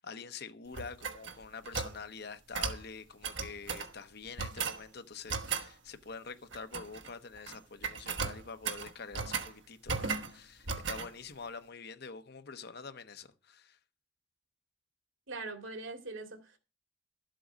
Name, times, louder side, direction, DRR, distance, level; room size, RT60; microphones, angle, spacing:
voice 1, 0.0-13.8, left 5 dB, 55° left, 1.0 m, -46 dB
sound 1, 0.7-2.0 2.5-2.8 3.2-3.9 4.4-4.8 5.3-5.7 6.5-7.1 7.4-7.6 7.8-9.5 9.9-10.3 10.7-11.1, right 5 dB, 70° right, 1.2 m, -36 dB
voice 2, 15.3-16.6, right 3 dB, 85° right, 2.2 m, -42 dB
12.5 x 7.7 x 5.1 m
head